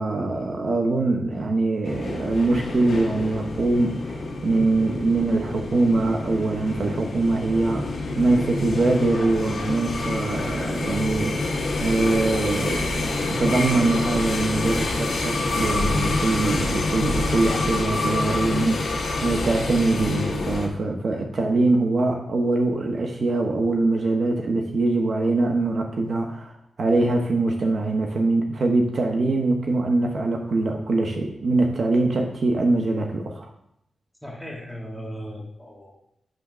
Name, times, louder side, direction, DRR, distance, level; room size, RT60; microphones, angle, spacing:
voice 1, 0.0-7.8 8.2-33.5, right 2 dB, 50° right, 2 dB, 0.8 m, -23 dB
sound 1, 1.8-20.7, left 2 dB, 70° left, 1.4 m, -27 dB
voice 2, 34.2-35.9, equal, ahead, -3 dB, 1.6 m, -37 dB
7.7 x 3.6 x 6.0 m, 0.76 s
wide cardioid pair, 145°, 0 cm